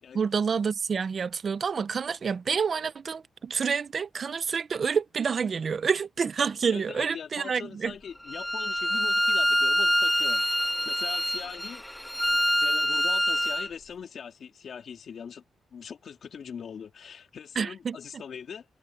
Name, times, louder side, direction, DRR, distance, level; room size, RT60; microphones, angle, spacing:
voice 1, 0.1-7.9 17.6-18.0, right 6 dB, 40° right, 0.7 m, -28 dB
voice 2, 6.7-10.4 10.8-11.8 12.5-15.4 15.7-18.6, left 7 dB, 50° left, 3.1 m, -41 dB
Bowed string instrument, 8.3-13.7, equal, 5° left, 0.9 m, -25 dB
wide cardioid pair, 170°, 0 cm